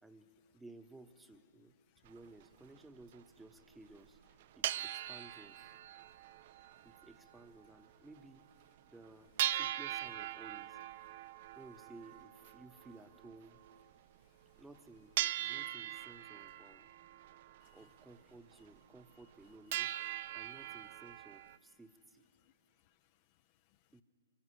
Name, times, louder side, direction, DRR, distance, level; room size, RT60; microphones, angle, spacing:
voice 1, 0.0-1.7 2.0-4.2 4.6-5.7 6.8-8.5 8.9-10.8 11.6-13.6 14.6-15.1 15.4-16.9 17.7-19.9 20.3-22.3 23.9-24.0, right 2 dB, 5° right, 8 dB, 1.0 m, -57 dB
sound 1, 2.0-2.2 2.8-2.9 3.0-3.2 3.9-4.0 4.3-7.4 7.6-7.7 8.2-8.3 8.6-8.7 9.4-13.9 14.6-14.8 15.2-18.1 18.5-18.6 19.0-19.4 19.7-21.6, right 13 dB, 50° right, 0.4 m, -41 dB
voice 2, 14.2-14.6 17.6-17.9 20.5-20.6 22.4-23.9, left 14 dB, 40° left, 12 dB, 0.5 m, -74 dB
24.0 x 16.0 x 9.9 m, 2.9 s
figure-of-eight pair, 115°, 0 cm